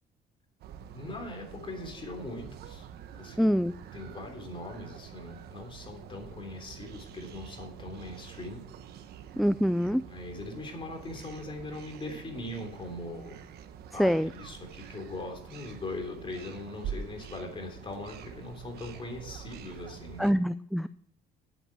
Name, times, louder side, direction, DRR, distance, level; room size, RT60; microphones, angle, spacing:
sound 1, 0.6-20.3, right 8 dB, 70° right, 1.1 m, -46 dB
voice 1, 0.9-2.9 3.1-3.5 3.9-8.7 10.1-13.4 13.9-20.2, left 2 dB, 30° left, 3 dB, 3.4 m, -41 dB
voice 2, 3.4-3.7 9.4-10.0 14.0-14.3 20.2-20.9, equal, ahead, 13 dB, 0.4 m, -25 dB
11.0 x 9.0 x 4.8 m, 0.63 s
cardioid pair, 110°, 17 cm